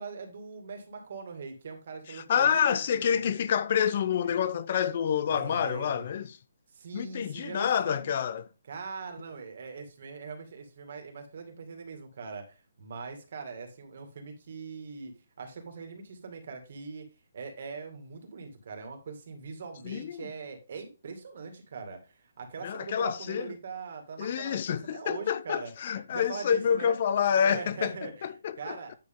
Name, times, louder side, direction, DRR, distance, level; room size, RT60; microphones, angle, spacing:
voice 1, 0.0-3.2 5.3-6.1 6.7-8.2 8.7-15.1 15.4-17.0 17.3-25.7 26.1-27.0 27.3-28.3 28.6-28.9, right 5 dB, 40° right, 2.1 m, -41 dB
voice 2, 2.1-6.4 6.9-8.5 19.8-20.3 22.6-23.5 24.2-27.9 28.2-28.8, left 8 dB, 30° left, 0.5 m, -28 dB
9.5 x 6.6 x 3.6 m
hypercardioid pair, 180°, 0 cm